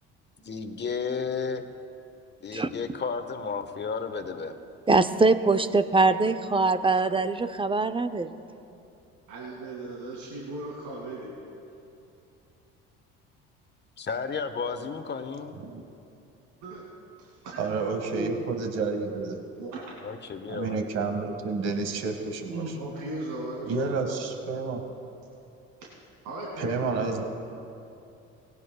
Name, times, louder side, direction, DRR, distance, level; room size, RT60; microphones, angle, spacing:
voice 1, 0.4-1.6 2.4-4.6 14.0-15.6 20.0-20.8, left 5 dB, 35° left, 8 dB, 1.2 m, -33 dB
voice 2, 4.9-8.3, right 3 dB, 15° right, 10 dB, 0.6 m, -23 dB
voice 3, 9.3-11.3 16.6-16.8 17.2-17.6 18.1-18.3 19.6-19.8 22.5-23.9 26.2-27.1, right 2 dB, 80° right, -4 dB, 2.4 m, -37 dB
voice 4, 17.6-19.4 20.5-22.6 23.7-24.8 26.6-27.2, right 4 dB, 55° right, 4 dB, 1.7 m, -30 dB
19.0 x 16.5 x 2.3 m, 2.7 s
supercardioid pair, 75°, 30 cm